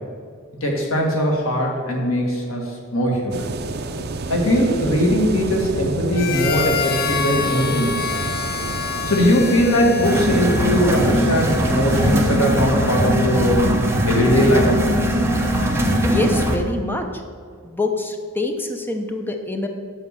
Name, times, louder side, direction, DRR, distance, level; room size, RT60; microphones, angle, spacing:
voice 1, 0.6-3.4 4.3-8.1 9.1-13.6 14.1-14.8, equal, 80° left, -1 dB, 2.1 m, -20 dB
sound 1, 3.3-12.4, right 3 dB, 50° right, 0.6 m, -30 dB
Harmonica, 6.1-11.1, left 6 dB, 50° left, 0.6 m, -27 dB
sound 2, 10.0-16.6, equal, 10° right, 0.9 m, -20 dB
voice 2, 16.1-17.1 17.6-19.7, left 2 dB, 10° left, 5 dB, 0.7 m, -25 dB
8.2 x 6.0 x 6.9 m, 2.1 s
head